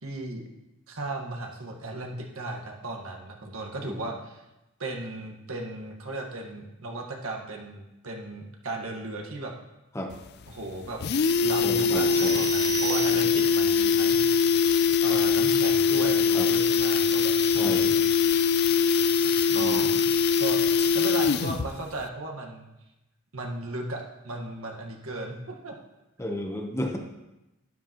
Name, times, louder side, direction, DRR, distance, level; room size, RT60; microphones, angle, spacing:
voice 1, 0.0-0.5 0.9-4.4 4.8-9.5 10.5-11.0 11.4-14.2 15.0-17.3 17.6-18.1 19.5-20.0 20.4-20.6 20.9-22.7 23.3-25.8, right 2 dB, 75° right, 1 dB, 1.5 m, -36 dB
sound 1, 10.1-10.2 10.5-10.6 10.9-21.7 22.0-22.1, left 5 dB, 50° left, 0.4 m, -22 dB
voice 2, 11.6-12.5 13.1-13.3 16.3-16.5 17.5-18.0 19.5-19.9 21.3-21.4 26.2-27.0, left 1 dB, 15° left, 2 dB, 0.9 m, -33 dB
sound 2, 12.1-13.6, right 10 dB, 40° right, 4.2 m, -36 dB
12.0 x 10.0 x 3.0 m, 0.97 s
head